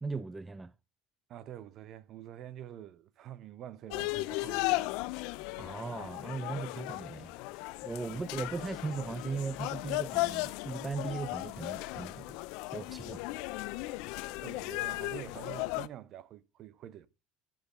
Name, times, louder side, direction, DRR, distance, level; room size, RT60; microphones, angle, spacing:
voice 1, 0.0-0.7 5.6-12.4 12.7-13.2, right 4 dB, 15° right, 0.5 m, -38 dB
voice 2, 1.3-5.1 8.1-8.2 13.0-13.5 14.3-17.1, right 11 dB, 55° right, 0.8 m, -47 dB
sound 1, 3.9-15.9, left 21 dB, 75° left, 0.5 m, -36 dB
10.5 x 5.2 x 6.1 m
supercardioid pair, 100°, 0 cm